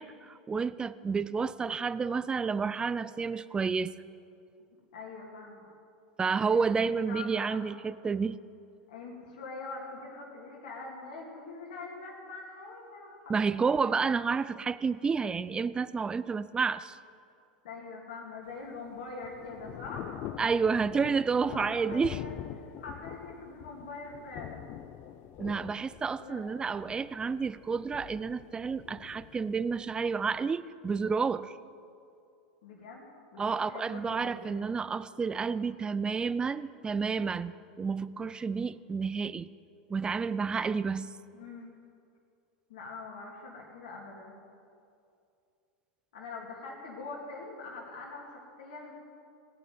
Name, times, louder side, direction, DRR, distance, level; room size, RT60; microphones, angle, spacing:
voice 1, 0.0-4.0 6.2-8.4 13.3-17.0 20.4-22.2 25.4-31.6 33.4-39.5 39.9-41.1, right 5 dB, 15° right, 16 dB, 0.5 m, -30 dB
voice 2, 4.9-5.7 6.3-7.8 8.9-14.0 17.6-20.3 21.5-22.4 22.8-24.8 26.2-26.4 32.6-33.0 33.3-34.6 41.3-41.7 42.7-44.4 46.1-48.9, left 3 dB, 70° left, -3 dB, 2.5 m, -44 dB
Thunder / Rain, 18.5-30.4, left 12 dB, 45° left, 0.6 m, -45 dB
17.0 x 6.9 x 9.4 m, 2.5 s
hypercardioid pair, 95°, 5 cm